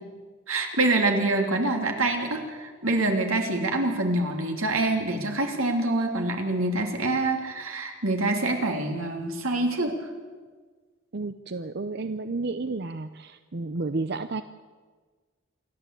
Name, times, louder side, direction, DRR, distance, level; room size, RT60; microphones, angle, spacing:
voice 1, 0.5-10.0, right 2 dB, 90° right, 3 dB, 3.2 m, -26 dB
voice 2, 11.1-14.4, right 3 dB, 50° right, 10 dB, 0.7 m, -31 dB
27.5 x 11.5 x 8.4 m, 1.4 s
head